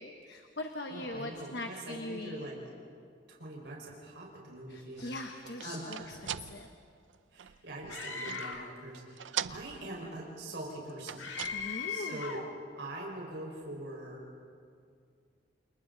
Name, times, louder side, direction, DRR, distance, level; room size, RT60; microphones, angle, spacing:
voice 1, 0.0-2.5 4.7-6.7 11.5-12.2, left 2 dB, 60° left, 4 dB, 1.2 m, -41 dB
voice 2, 0.9-2.6 3.3-5.1 5.6-6.2 7.3-11.2 11.9-12.4 12.7-14.2, right 1 dB, 70° right, -3 dB, 5.1 m, -43 dB
sound 1, 5.0-8.7 8.9-10.2 10.9-11.9, right 9 dB, 85° right, 0.5 m, -42 dB
Screaming, 7.9-8.8 11.2-12.5, left 5 dB, 85° left, 1.9 m, -38 dB
29.0 x 28.5 x 4.0 m, 2.2 s
head